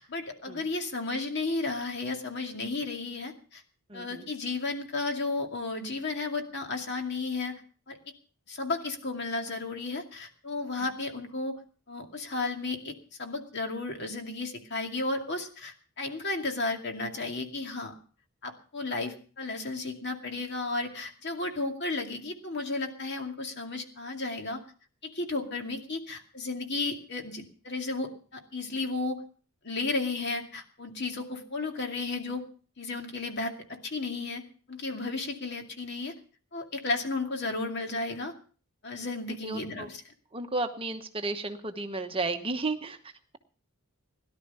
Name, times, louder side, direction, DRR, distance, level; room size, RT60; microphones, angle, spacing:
voice 1, 0.0-3.6 3.9-7.6 7.9-8.0 8.5-11.6 11.9-12.9 13.2-18.0 18.4-24.6 25.0-29.2 29.6-32.4 32.8-34.4 34.7-36.1 36.5-38.3 38.8-40.0, left 3 dB, 50° left, 4 dB, 2.4 m, -33 dB
voice 2, 3.9-4.2 39.0-39.1 39.4-39.9 40.3-43.4, right 3 dB, 25° right, 6 dB, 1.0 m, -33 dB
17.5 x 11.5 x 5.5 m, 0.41 s
head